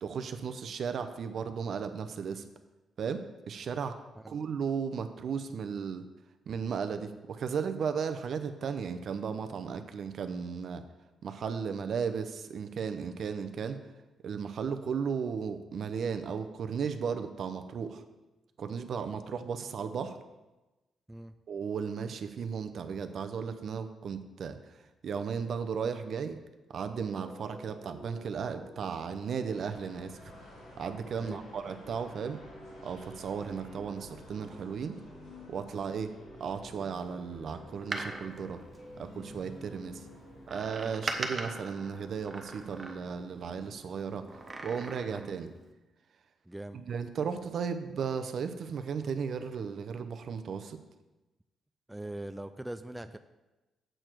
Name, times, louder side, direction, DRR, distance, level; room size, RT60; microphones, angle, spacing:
voice 1, 0.0-2.5 3.0-3.2 3.5-4.0 4.3-6.0 6.5-10.8 11.2-13.8 14.2-18.0 18.6-20.2 21.5-26.4 26.7-30.3 30.8-32.4 32.8-35.0 35.5-36.1 36.4-38.6 39.0-40.0 40.5-44.2 44.6-45.5 46.7-50.8, right 6 dB, 60° right, 9 dB, 0.6 m, -35 dB
sound 1, 26.9-45.6, equal, 10° left, 1.7 m, -52 dB
sound 2, 29.5-44.9, equal, 90° left, 2.5 m, -56 dB
Door, 37.7-39.5 40.5-43.3 44.3-45.4 45.7-45.8, right 2 dB, 30° right, 0.9 m, -40 dB
voice 2, 46.5-46.8 51.9-53.2, right 1 dB, 10° right, 9 dB, 0.3 m, -42 dB
7.7 x 6.7 x 4.6 m, 1.1 s
cardioid pair, 105°, 0 cm